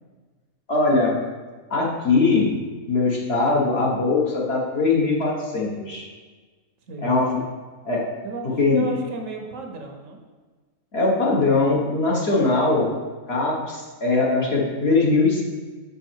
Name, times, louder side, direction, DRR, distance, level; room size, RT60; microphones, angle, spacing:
voice 1, 0.7-1.2 1.7-2.5 2.9-6.0 7.0-7.3 7.8-8.0 8.6-8.8 10.9-12.9 13.3-15.4, left 3 dB, 45° left, -3 dB, 1.5 m, -21 dB
voice 2, 8.2-10.2, right 2 dB, 65° right, 3 dB, 1.1 m, -33 dB
6.3 x 5.5 x 4.5 m, 1.4 s
omnidirectional pair, 1.5 m